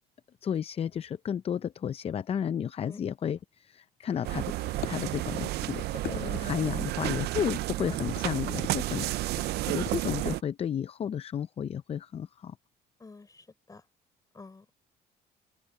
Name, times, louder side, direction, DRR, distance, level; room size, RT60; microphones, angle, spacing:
voice 1, 0.4-4.5 4.9-12.6, left 8 dB, 35° left, 0.5 m, -33 dB
sound 1, 4.1-10.4, left 13 dB, 70° left, 2.0 m, -45 dB
sound 2, 4.2-10.4, right 17 dB, 75° right, 0.5 m, -32 dB
voice 2, 6.1-6.5 7.9-8.0 13.0-13.8 14.3-14.7, left 3 dB, 20° left, 4.6 m, -47 dB
open air
cardioid pair, 110°, 17 cm